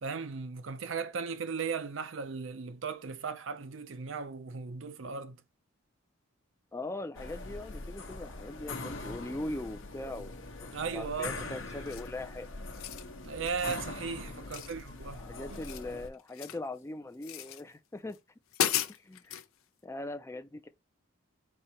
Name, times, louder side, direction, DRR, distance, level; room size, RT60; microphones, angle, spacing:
voice 1, 0.0-5.4 10.7-11.8 13.2-15.2 15.5-15.6, right 5 dB, 70° right, 0.6 m, -37 dB
voice 2, 6.7-12.5 14.4-14.6 15.1-18.2 18.8-19.4 19.8-20.7, left 2 dB, 15° left, 0.4 m, -41 dB
sound 1, 7.1-16.1, left 3 dB, 70° left, 0.8 m, -42 dB
sound 2, 11.9-12.2 12.6-13.1 13.5-13.8 14.5-15.2 15.4-16.7 17.2-17.6 18.1-18.2 18.5-19.5, left 11 dB, 90° left, 0.5 m, -35 dB
4.2 x 2.8 x 4.4 m
head